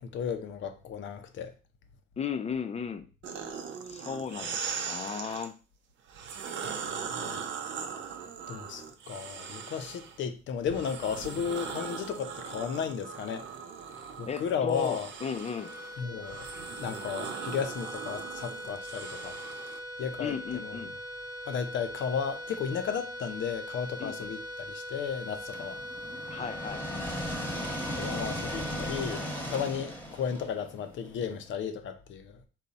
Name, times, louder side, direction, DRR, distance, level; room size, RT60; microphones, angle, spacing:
voice 1, 0.0-1.5 6.6-7.4 8.5-13.5 14.2-15.1 16.0-16.4 16.8-19.4 20.0-20.3 20.6-20.8 21.5-25.8 28.0-32.5, left 7 dB, 70° left, 0.7 m, -34 dB
voice 2, 2.2-3.1 3.8-5.5 13.9-15.7 20.2-20.9 24.0-24.3 26.3-27.3, left 6 dB, 35° left, 0.5 m, -36 dB
sound 1, 3.2-5.5 6.1-10.2 10.6-19.8, right 6 dB, 70° right, 0.7 m, -40 dB
sound 2, 15.5-30.1, equal, 20° right, 0.5 m, -41 dB
sound 3, 25.5-31.4, equal, 10° left, 1.0 m, -37 dB
4.1 x 2.3 x 4.0 m
cardioid pair, 90°, 20 cm